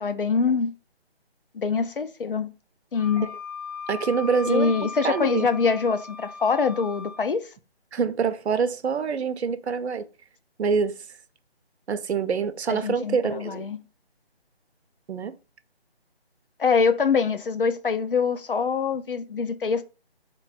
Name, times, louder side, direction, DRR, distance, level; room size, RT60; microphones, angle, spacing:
voice 1, 0.0-0.7 1.5-2.5 2.9-3.3 4.5-7.5 12.7-13.8 16.6-19.8, left 5 dB, 55° left, 0.4 m, -24 dB
Wind instrument woodwind instrument, 3.0-7.2, left 5 dB, 35° right, 0.4 m, -38 dB
voice 2, 3.9-4.7 5.0-5.5 7.9-10.0 10.6-11.0 11.9-13.7 15.1-15.3, right 6 dB, 80° right, 0.6 m, -25 dB
3.0 x 2.2 x 4.2 m
figure-of-eight pair, 175°, 32 cm